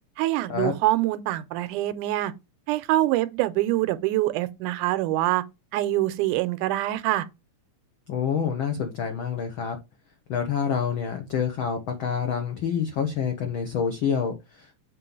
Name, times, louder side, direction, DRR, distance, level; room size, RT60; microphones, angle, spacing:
voice 1, 0.2-2.3 2.7-5.4 5.7-7.3, right 15 dB, 90° right, 2.1 m, -25 dB
voice 2, 8.1-9.8 10.3-14.7, left 7 dB, 90° left, 1.1 m, -27 dB
7.3 x 3.0 x 5.3 m
omnidirectional pair, 3.5 m